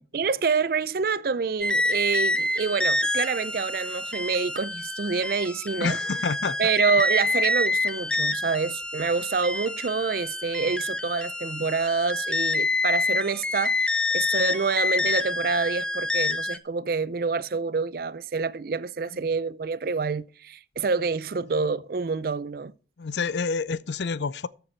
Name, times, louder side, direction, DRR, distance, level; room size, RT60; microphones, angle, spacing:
voice 1, 0.1-6.0 6.6-22.7, right 5 dB, 55° right, 0.4 m, -27 dB
sound 1, 1.6-16.6, left 2 dB, 5° left, 0.6 m, -27 dB
voice 2, 5.8-6.6 23.0-24.5, left 5 dB, 75° left, 0.5 m, -28 dB
13.5 x 6.8 x 4.5 m
head